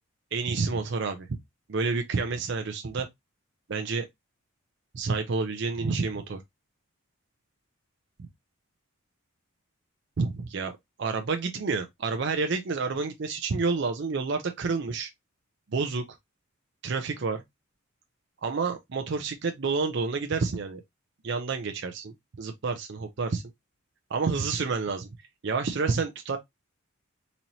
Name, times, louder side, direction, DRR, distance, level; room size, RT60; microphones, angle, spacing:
voice 1, 0.3-1.4 1.7-3.1 3.7-4.1 4.9-6.4 10.2-10.7 11.0-15.1 15.7-16.1 16.8-17.4 18.4-20.8 21.2-23.4 24.1-25.1 25.4-26.4, right 4 dB, 55° right, 0.5 m, -29 dB
4.0 x 2.9 x 2.8 m
head